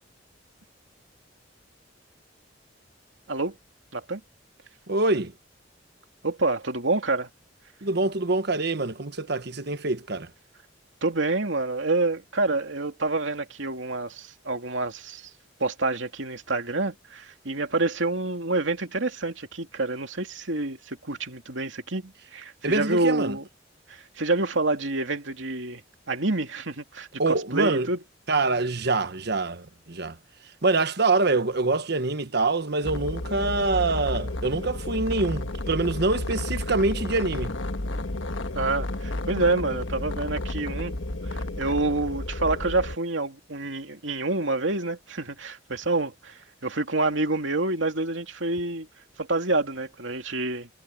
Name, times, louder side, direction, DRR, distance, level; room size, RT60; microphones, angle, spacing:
voice 1, 4.9-5.3 7.8-10.3 22.6-23.4 27.2-27.9 28.3-30.2 30.6-37.5, right 3 dB, 60° right, 1.3 m, -25 dB
voice 2, 6.2-7.3 11.0-15.3 15.6-23.5 23.9-25.8 26.1-28.0 38.5-41.0 41.2-48.9 49.2-50.7, right 2 dB, 75° right, 2.6 m, -27 dB
sound 1, 32.8-43.0, left 2 dB, 85° left, 1.4 m, -32 dB
head